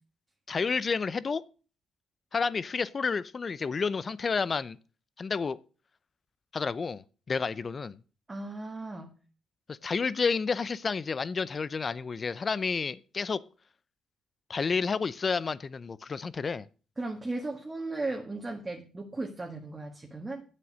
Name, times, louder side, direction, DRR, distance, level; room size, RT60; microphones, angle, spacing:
voice 1, 0.5-1.4 2.3-4.8 5.2-5.6 6.5-8.0 9.7-13.4 14.5-16.7, left 5 dB, 35° left, 0.6 m, -30 dB
voice 2, 8.3-9.1 17.0-20.4, right 2 dB, 20° right, 1.8 m, -36 dB
8.8 x 7.7 x 6.3 m
cardioid pair, 90°, 0 cm